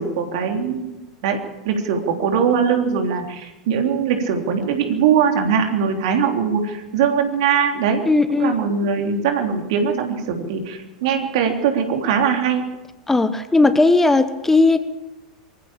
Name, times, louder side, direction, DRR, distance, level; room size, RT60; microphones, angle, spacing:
voice 1, 0.0-1.4 1.7-8.0 8.3-12.7, right 7 dB, 55° right, 4 dB, 3.3 m, -21 dB
voice 2, 8.0-8.6 13.1-14.8, left 3 dB, 10° left, 11 dB, 1.1 m, -16 dB
23.5 x 15.5 x 7.2 m, 1.1 s
figure-of-eight pair, 85°, 4 cm